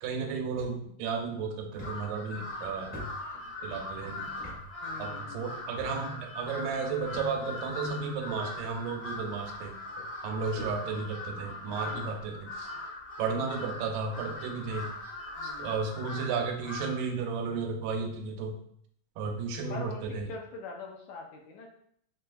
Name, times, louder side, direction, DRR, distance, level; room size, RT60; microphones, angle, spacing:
voice 1, 0.0-3.0 3.6-4.3 5.0-9.7 10.2-12.7 13.2-14.9 15.4-18.6 19.2-20.3, right 5 dB, 85° right, 3 dB, 2.3 m, -33 dB
sound 1, 0.6-0.7 1.2-1.3 1.8-3.8 4.4-4.6 4.9-5.0 5.8-6.2 7.1-7.7 8.5-8.6 9.6-9.7 10.0-11.1 11.6-11.9 12.6-12.7 13.2-13.3 13.6-13.7 14.1-14.3, left 1 dB, 55° right, 0.3 m, -46 dB
Crow, 1.7-17.1, left 2 dB, 45° left, 1.0 m, -40 dB
voice 2, 4.8-5.5 11.6-12.1 15.4-15.8 19.7-21.7, left 3 dB, 80° left, 1 dB, 1.8 m, -43 dB
5.9 x 3.3 x 2.2 m, 0.67 s
omnidirectional pair, 3.8 m